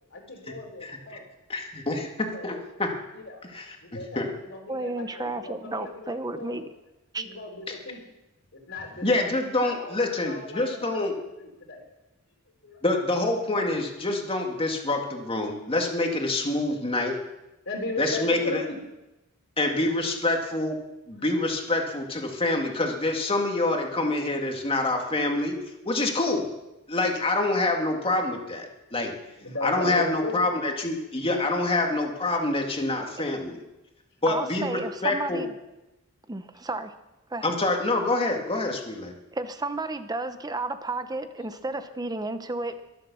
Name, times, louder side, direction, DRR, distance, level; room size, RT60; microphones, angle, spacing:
voice 1, 0.1-1.2 2.3-2.6 3.1-3.4 3.8-6.6 7.2-8.0 8.5-9.3 9.6-11.8 12.6-12.8 17.7-18.8 23.9-24.0 24.3-24.5 28.5-28.6 29.2-30.6 41.4-41.5, left 2 dB, 60° left, -1 dB, 3.5 m, -37 dB
voice 2, 1.5-2.9 3.5-3.8 4.2-4.3 9.0-11.1 12.8-17.2 18.0-18.6 19.6-20.8 21.1-25.5 25.8-26.5 26.9-29.1 29.6-33.6 34.2-35.4 37.4-39.1, left 2 dB, 25° left, 2 dB, 2.2 m, -26 dB
voice 3, 4.7-6.7 7.1-7.3 34.3-35.5 36.3-36.9 37.3-37.5 39.3-42.9, right 2 dB, 20° right, 10 dB, 0.8 m, -32 dB
22.5 x 7.6 x 7.0 m, 0.98 s
head